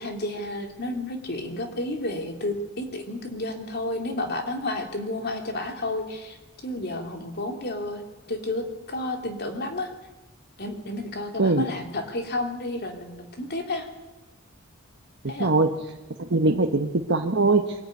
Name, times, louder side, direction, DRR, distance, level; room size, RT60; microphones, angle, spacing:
voice 1, 0.0-6.4 6.6-9.9 10.6-13.9 15.3-15.5 16.4-16.6, left 2 dB, 50° left, 4 dB, 3.2 m, -31 dB
voice 2, 15.4-15.7 16.2-17.7, right 3 dB, 60° right, 4 dB, 1.2 m, -21 dB
24.0 x 14.0 x 9.5 m, 1.1 s
head